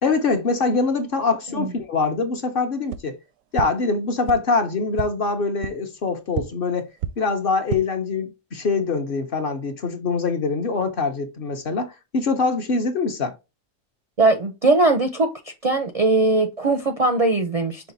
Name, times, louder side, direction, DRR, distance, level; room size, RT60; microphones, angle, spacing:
voice 1, 0.0-3.2 3.5-6.9 7.2-13.3, left 4 dB, 50° left, 0.8 m, -24 dB
sound 1, 2.9-3.0 3.5-3.7 4.2-4.4 4.9-5.1 5.6-5.7 6.3-6.4 7.0-7.1 7.5-7.8, right 10 dB, 80° right, 1.0 m, -27 dB
voice 2, 14.2-15.3 15.6-17.9, right 2 dB, 45° right, 0.4 m, -20 dB
5.6 x 2.3 x 3.9 m
omnidirectional pair, 1.3 m